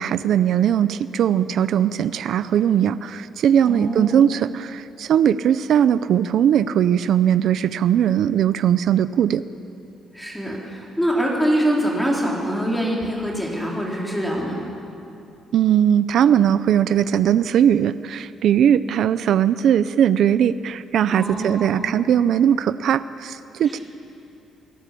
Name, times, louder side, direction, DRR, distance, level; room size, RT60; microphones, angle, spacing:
voice 1, 0.0-9.4 15.5-23.8, right 9 dB, 55° right, 13 dB, 0.6 m, -19 dB
voice 2, 3.6-4.3 10.1-14.6 21.1-21.9 23.7-23.8, equal, ahead, -3 dB, 4.1 m, -24 dB
29.0 x 18.0 x 8.5 m, 2.7 s
cardioid pair, 180°, 0 cm